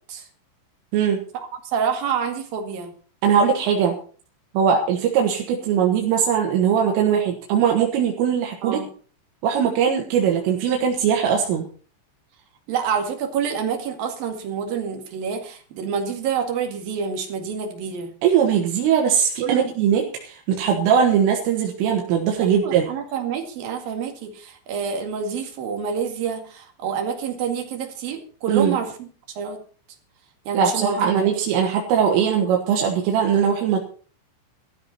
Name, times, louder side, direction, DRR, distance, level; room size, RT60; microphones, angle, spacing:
voice 1, 1.3-2.9 8.6-8.9 12.7-18.1 19.4-19.7 22.4-29.1 29.4-29.6 30.4-31.3, right 6 dB, 55° right, 4 dB, 3.3 m, -27 dB
voice 2, 3.2-4.0 4.6-8.8 9.4-11.6 18.2-22.9 28.5-28.8 30.5-33.8, right 7 dB, 85° right, 1 dB, 4.2 m, -20 dB
15.0 x 13.5 x 4.3 m, 0.41 s
omnidirectional pair, 5.7 m